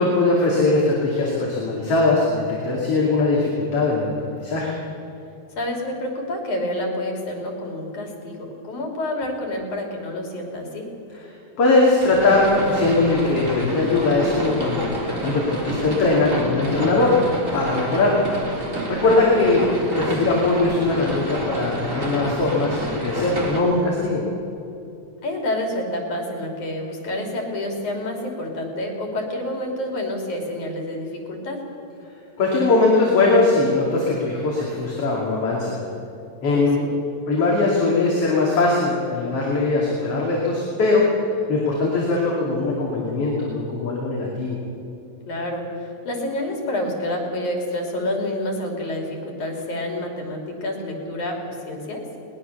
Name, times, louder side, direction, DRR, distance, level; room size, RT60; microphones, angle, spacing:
voice 1, 0.0-4.7 11.6-17.2 17.5-18.1 18.9-24.2 32.4-35.8 36.4-36.8 37.3-41.0 41.5-44.6, left 3 dB, 55° left, -4 dB, 3.6 m, -20 dB
voice 2, 5.6-8.4 8.6-10.9 19.0-19.3 25.2-31.6 36.5-36.9 45.3-51.4 51.7-52.0, left 1 dB, 85° left, 2 dB, 4.6 m, -28 dB
sound 1, 12.0-23.6, right 1 dB, 25° right, 3.9 m, -29 dB
21.5 x 19.5 x 6.8 m, 2.8 s
omnidirectional pair, 3.3 m